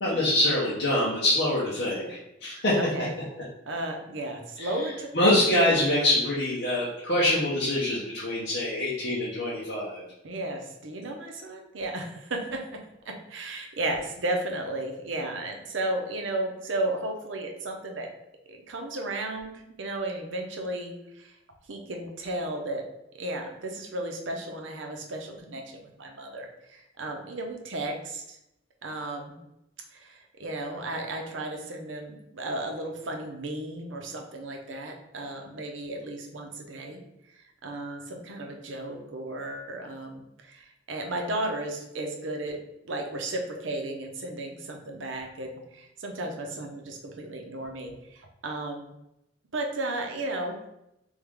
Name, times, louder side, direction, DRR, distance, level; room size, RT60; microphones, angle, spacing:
voice 1, 0.0-2.8 4.6-4.8 5.1-10.0, left 1 dB, 65° left, -7 dB, 0.9 m, -25 dB
voice 2, 2.7-3.1 3.7-6.0 10.2-12.6 13.1-18.1 18.5-19.5 19.8-21.3 21.7-22.8 23.2-28.4 28.8-29.4 29.9-37.0 37.6-42.6 42.8-48.9 49.5-50.6, right 1 dB, 80° right, 2 dB, 0.8 m, -34 dB
3.6 x 3.5 x 3.5 m, 0.86 s
head